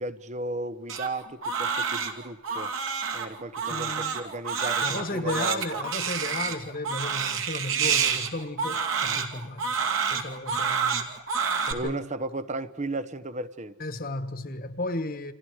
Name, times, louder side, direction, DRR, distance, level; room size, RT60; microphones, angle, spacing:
voice 1, 0.0-2.7 3.1-5.8 9.0-9.2 11.7-13.7, right 2 dB, 30° right, 0.9 m, -35 dB
Crying sobbing, 0.9-11.7, right 6 dB, 60° right, 2.5 m, -28 dB
voice 2, 3.7-4.2 4.8-9.7 10.1-11.1 11.7-12.0 13.8-15.3, left 2 dB, 40° left, 1.4 m, -34 dB
29.5 x 26.5 x 4.8 m
head